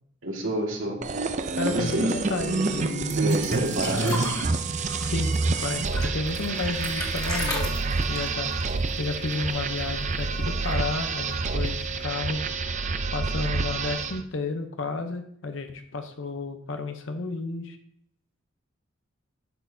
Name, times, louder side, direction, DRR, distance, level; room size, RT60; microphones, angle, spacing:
voice 1, 0.2-1.0 1.7-2.1 3.2-4.3, right 1 dB, 75° right, 0 dB, 1.9 m, -28 dB
sound 1, 1.0-14.2, right 3 dB, 35° right, 0.5 m, -28 dB
voice 2, 1.5-3.2 3.6-4.2 5.0-5.3 5.6-8.5 9.0-12.4 13.1-17.8, left 3 dB, 65° left, 6 dB, 0.8 m, -32 dB
sound 2, 3.1-9.5 9.8-9.9 10.2-10.9 11.7-11.8, left 2 dB, 20° left, 1.6 m, -36 dB
10.0 x 6.4 x 2.7 m, 0.66 s
head